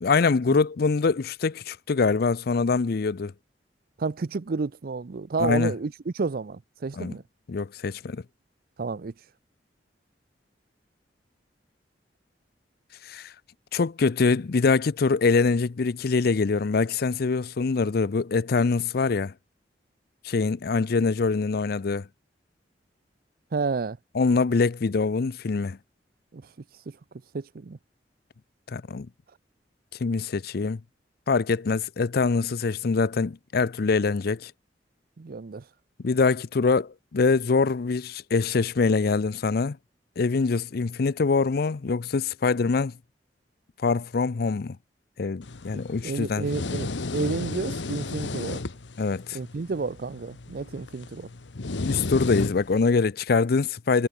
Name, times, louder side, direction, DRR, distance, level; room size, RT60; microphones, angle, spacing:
voice 1, 0.0-3.3 5.4-5.7 7.0-7.1 7.5-8.2 13.0-13.3 13.7-19.3 20.2-22.1 24.1-25.8 28.7-29.1 30.0-30.8 31.3-34.5 36.0-39.8 40.2-42.9 43.8-44.8 45.2-46.5 49.0-49.4 51.8-54.1, left 4 dB, 60° left, 0.5 m, -24 dB
voice 2, 4.0-7.2 8.8-9.1 23.5-24.0 26.3-26.5 26.9-27.0 27.3-27.8 35.2-35.6 45.7-48.6 49.3-51.3, right 4 dB, 55° right, 0.5 m, -31 dB
sound 1, 45.4-52.9, left 3 dB, 90° left, 1.0 m, -34 dB
head